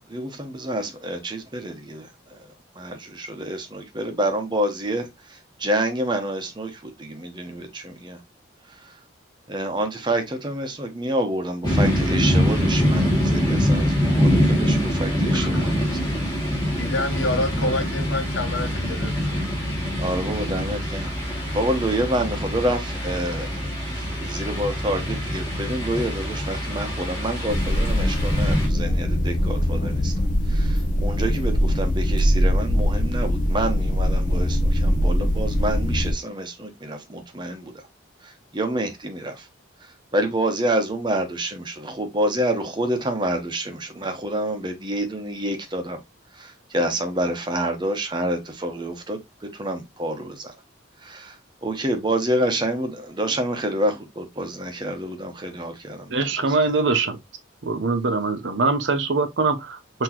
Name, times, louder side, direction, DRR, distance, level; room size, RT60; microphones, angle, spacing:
voice 1, 0.1-8.2 8.7-9.0 9.5-16.1 20.0-21.1 21.5-30.1 30.4-37.9 38.2-39.5 39.8-46.0 46.3-50.5 51.0-56.6, right 1 dB, 25° right, 1.0 m, -28 dB
sound 1, 11.6-28.7, equal, 20° left, 2.2 m, -24 dB
voice 2, 15.3-15.9 16.8-19.5, left 2 dB, 85° left, 1.0 m, -28 dB
sound 2, 27.5-36.1, equal, 45° left, 0.8 m, -22 dB
voice 3, 56.1-57.2 57.6-60.0, right 3 dB, 70° right, 0.8 m, -23 dB
6.0 x 3.0 x 2.9 m
head